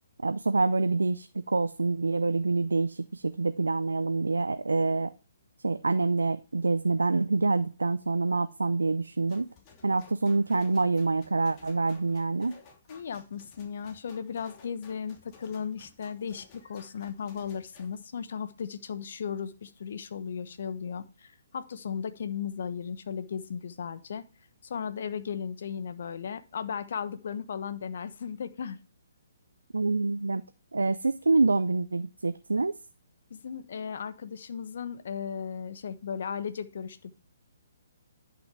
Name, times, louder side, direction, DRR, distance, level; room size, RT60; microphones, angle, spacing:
voice 1, 0.2-5.1 5.6-9.5 9.8-12.5 29.7-30.4 30.7-32.7, right 3 dB, 85° right, 11 dB, 0.5 m, -26 dB
sound 1, 9.3-17.9, left 4 dB, 30° left, 2.9 m, -56 dB
voice 2, 12.9-24.2 24.6-28.8 33.3-37.1, left 7 dB, 60° left, 11 dB, 1.1 m, -36 dB
11.0 x 6.1 x 4.7 m, 0.34 s
figure-of-eight pair, 135°, 0 cm